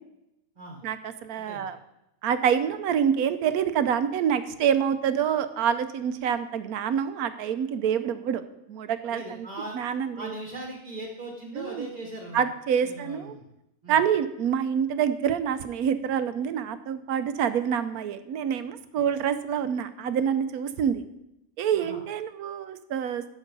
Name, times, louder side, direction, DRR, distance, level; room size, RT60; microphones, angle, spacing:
voice 1, 0.8-1.8 2.2-8.4 8.7-9.5 9.7-10.3 11.6-11.9 12.3-13.3 13.9-21.0 21.6-23.3, right 8 dB, 80° right, 11 dB, 1.2 m, -26 dB
voice 2, 9.1-9.8 10.1-12.5 12.8-13.4 13.8-14.0 21.7-22.0, right 1 dB, 30° right, 0 dB, 1.4 m, -39 dB
11.0 x 6.3 x 5.3 m, 0.86 s
omnidirectional pair, 1.6 m